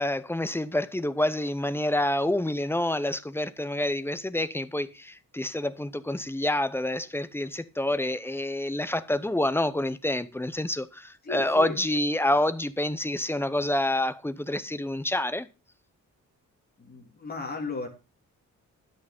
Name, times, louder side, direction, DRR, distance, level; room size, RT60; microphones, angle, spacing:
voice 1, 0.0-15.5, left 1 dB, 5° left, 0.6 m, -28 dB
voice 2, 11.2-11.8 16.8-17.9, left 4 dB, 30° left, 2.9 m, -35 dB
11.0 x 6.4 x 5.1 m
wide cardioid pair, 140°, 32 cm